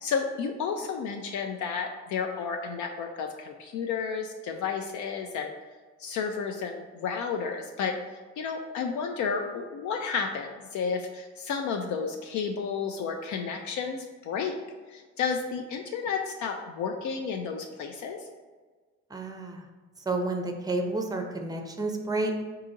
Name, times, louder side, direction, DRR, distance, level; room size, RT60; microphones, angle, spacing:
voice 1, 0.0-5.5 6.0-8.0 8.4-14.5 14.9-18.2, left 6 dB, 75° left, 3 dB, 0.5 m, -32 dB
voice 2, 19.1-19.6 20.1-22.3, right 2 dB, 15° right, 4 dB, 0.5 m, -30 dB
3.9 x 2.8 x 3.8 m, 1.4 s
cardioid pair, 90°, 30 cm